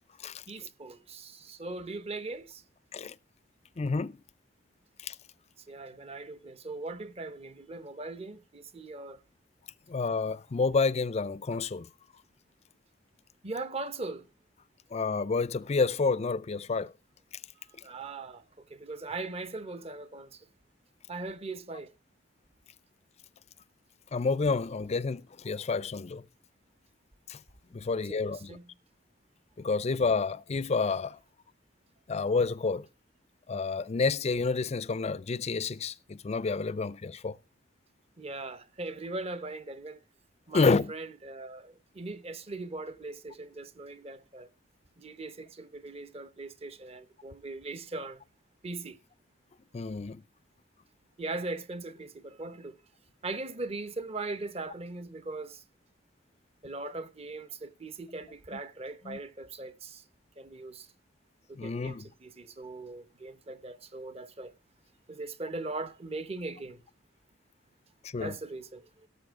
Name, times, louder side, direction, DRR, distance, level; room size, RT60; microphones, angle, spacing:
voice 1, 0.5-2.6 5.6-9.2 13.4-14.3 17.8-20.5 21.1-21.9 27.8-28.7 38.2-40.0 40.5-44.5 45.0-48.2 48.6-49.0 51.2-52.8 53.2-55.6 56.6-60.0 60.4-60.9 61.5-64.5 65.1-66.8 68.2-69.1, right 3 dB, 35° right, 0.9 m, -40 dB
voice 2, 3.8-4.2 5.0-5.1 9.9-11.9 14.9-16.9 24.1-26.2 27.3-27.4 27.7-28.6 29.6-31.2 32.1-32.9 33.5-37.3 40.5-40.9 49.7-50.2 59.1-59.2 61.6-62.1 68.1-68.4, left 4 dB, 35° left, 0.4 m, -29 dB
17.0 x 7.1 x 3.6 m
head